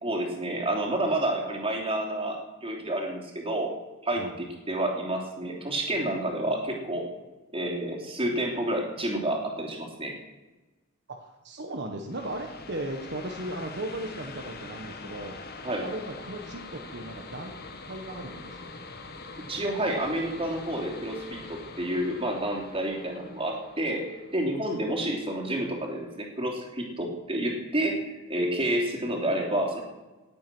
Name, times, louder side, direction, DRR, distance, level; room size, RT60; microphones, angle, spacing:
voice 1, 0.0-3.7 4.0-7.0 7.5-10.1 15.6-15.8 19.5-29.8, right 1 dB, 25° right, 0 dB, 3.1 m, -29 dB
voice 2, 11.2-17.5 17.8-18.9, right 1 dB, 55° right, 3 dB, 1.3 m, -37 dB
sound 1, 12.1-25.5, left 3 dB, 50° left, 1.5 m, -44 dB
18.5 x 8.5 x 6.2 m, 1.1 s
head